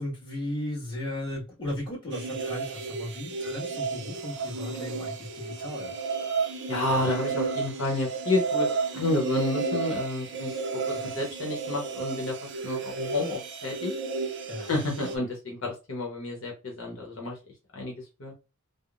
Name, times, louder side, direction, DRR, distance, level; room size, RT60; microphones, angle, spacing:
voice 1, 0.0-5.9 11.0-11.2 14.5-14.8, left 1 dB, 20° left, 1.5 m, -36 dB
sound 1, 2.1-15.2, right 4 dB, 55° right, 0.5 m, -32 dB
voice 2, 6.7-13.9 14.6-17.4 17.7-18.3, left 2 dB, 70° left, 0.9 m, -30 dB
3.5 x 2.1 x 2.4 m
head